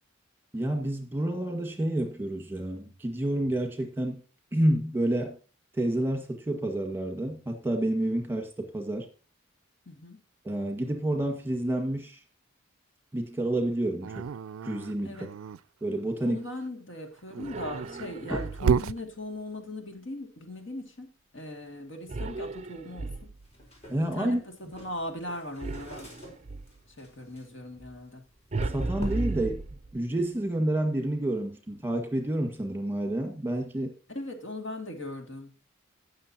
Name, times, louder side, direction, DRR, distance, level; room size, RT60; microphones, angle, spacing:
voice 1, 0.5-4.2 4.5-5.4 5.7-9.1 10.4-12.2 13.1-14.3 14.6-15.3 15.8-16.4 18.3-18.4 23.9-24.4 28.6-29.6 29.9-33.9, right 1 dB, 10° right, 1.7 m, -29 dB
voice 2, 9.9-10.2 15.0-15.3 16.2-21.1 21.3-23.3 24.0-26.1 27.0-28.2 34.1-35.5, left 1 dB, 65° left, 2.3 m, -39 dB
Dog, 14.0-15.6 17.2-19.0, right 6 dB, 90° right, 0.4 m, -30 dB
sound 1, 17.4-18.9 22.1-23.6 25.6-26.8 28.5-30.2, right 3 dB, 35° right, 0.5 m, -35 dB
sound 2, 23.4-29.5, equal, 30° left, 3.8 m, -44 dB
18.0 x 6.6 x 2.9 m
head